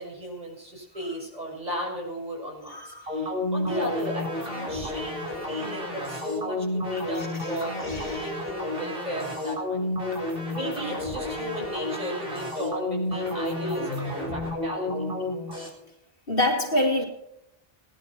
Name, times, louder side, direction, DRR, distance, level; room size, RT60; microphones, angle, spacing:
voice 1, 0.0-9.9 10.5-15.1, equal, 40° right, -2 dB, 6.6 m, -35 dB
voice 2, 2.7-3.0 7.9-8.1 16.3-17.0, left 1 dB, 65° left, 0 dB, 3.2 m, -25 dB
sound 1, 3.1-15.7, left 1 dB, 65° right, 4.7 m, -31 dB
20.0 x 11.0 x 4.5 m, 0.86 s
omnidirectional pair, 1.0 m